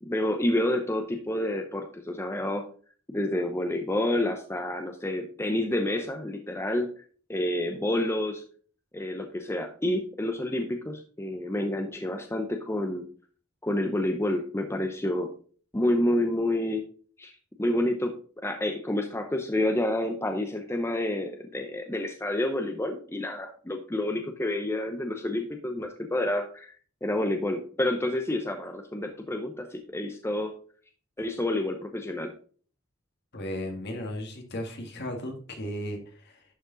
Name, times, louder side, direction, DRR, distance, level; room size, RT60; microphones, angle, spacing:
voice 1, 0.0-2.6 3.1-6.9 7.3-8.4 8.9-13.0 13.6-15.3 15.7-16.8 17.2-17.3 17.6-26.7 27.0-30.5 31.2-32.3, left 1 dB, 10° left, 5 dB, 0.7 m, -29 dB
voice 2, 33.3-36.4, left 1 dB, 55° left, 3 dB, 1.9 m, -35 dB
11.0 x 4.9 x 3.9 m, 0.43 s
head